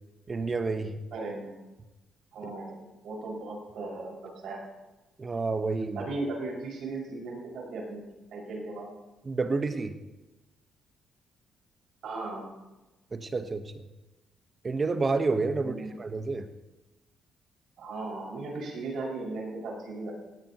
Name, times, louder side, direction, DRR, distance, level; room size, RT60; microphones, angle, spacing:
voice 1, 0.3-1.0 5.2-6.1 9.2-10.0 13.1-13.8 14.6-16.5, right 3 dB, 35° right, 8 dB, 1.2 m, -29 dB
voice 2, 1.1-1.6 2.3-4.6 5.9-8.0 8.3-8.9 12.0-12.5 15.6-15.9 17.8-20.1, right 3 dB, 70° right, -1 dB, 6.1 m, -37 dB
17.5 x 17.0 x 3.1 m, 1.1 s
cardioid pair, 90°, 0 cm